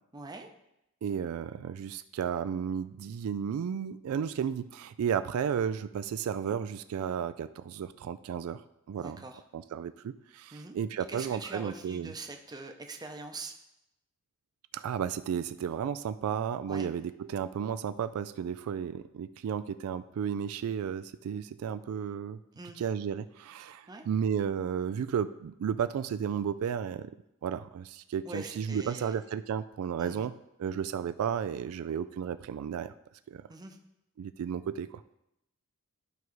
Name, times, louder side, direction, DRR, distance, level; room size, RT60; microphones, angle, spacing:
voice 1, 0.1-0.5 4.2-4.4 9.0-9.4 10.5-10.8 11.1-13.5 16.7-16.9 22.6-22.8 23.9-24.1 28.2-29.2 30.0-30.2 33.5-33.8, right 3 dB, 20° right, 4 dB, 0.7 m, -43 dB
voice 2, 1.0-8.6 8.9-9.2 9.5-12.1 14.7-22.4 22.8-27.2 27.4-30.3 30.6-32.9 33.3-33.5 34.2-35.0, right 8 dB, 80° right, 12 dB, 0.3 m, -33 dB
12.5 x 4.7 x 3.1 m, 0.86 s
head